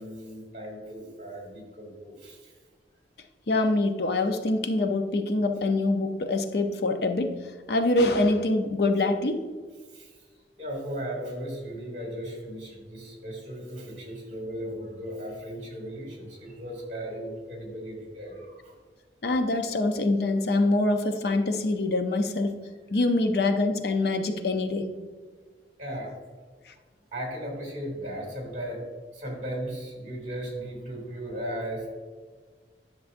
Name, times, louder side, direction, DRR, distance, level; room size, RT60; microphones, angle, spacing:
voice 1, 0.0-2.5 9.9-10.1 10.6-18.7 25.8-26.1 27.1-28.8 29.1-31.9, equal, 40° right, 0 dB, 2.4 m, -36 dB
voice 2, 3.5-7.3 7.7-9.4 19.2-22.5 22.9-24.9, left 2 dB, 60° left, 6 dB, 0.6 m, -25 dB
10.5 x 6.7 x 2.6 m, 1.5 s
head